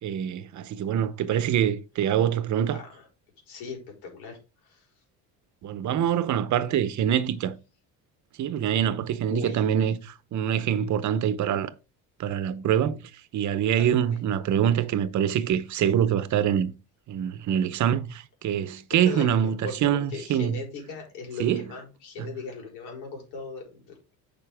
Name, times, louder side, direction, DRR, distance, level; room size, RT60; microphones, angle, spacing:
voice 1, 0.0-2.8 5.6-7.6 8.4-11.7 12.2-16.7 17.1-20.6 21.4-21.6, right 9 dB, 50° right, 0.9 m, -25 dB
voice 2, 2.7-3.1 3.5-4.9 9.3-9.6 13.7-14.0 19.0-24.2, left 4 dB, 85° left, 4.4 m, -39 dB
9.0 x 5.4 x 3.5 m
cardioid pair, 115°, 38 cm